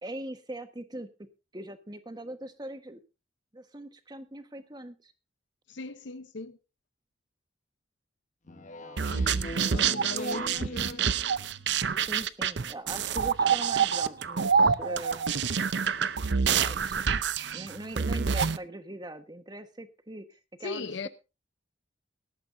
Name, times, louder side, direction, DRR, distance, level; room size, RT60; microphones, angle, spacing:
voice 1, 0.0-1.1 1.5-3.0 3.5-5.1 8.5-9.6 12.0-15.7 16.2-17.0 17.5-21.1, right 1 dB, 20° right, 1.4 m, -42 dB
voice 2, 5.7-6.6 9.1-11.1 20.6-21.1, left 3 dB, 75° left, 0.8 m, -38 dB
Speech synthesizer, 8.5-11.5, left 1 dB, 40° left, 1.0 m, -42 dB
sound 1, 9.0-18.6, right 6 dB, 65° right, 0.7 m, -27 dB
18.5 x 13.5 x 2.7 m
head